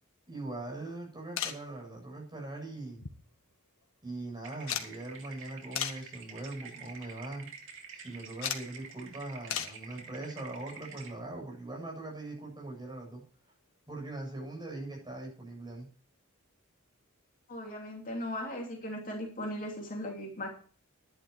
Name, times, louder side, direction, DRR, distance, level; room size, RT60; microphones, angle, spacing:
voice 1, 0.3-3.0 4.0-7.5 7.9-13.2 13.9-15.9, right 2 dB, 20° right, -1 dB, 7.7 m, -41 dB
sound 1, 1.4-1.7 2.9-3.5 3.8-3.9 4.7-4.9 5.8-6.1 6.8-7.0 8.4-8.7 9.5-9.8 11.4-11.5 12.9-13.0 13.2-13.3, left 9 dB, 65° left, 1.6 m, -35 dB
sound 2, 4.4-11.1, right 5 dB, 65° right, 2.6 m, -48 dB
voice 2, 17.5-20.5, left 1 dB, 40° left, 0 dB, 3.0 m, -38 dB
11.5 x 11.0 x 4.8 m, 0.41 s
head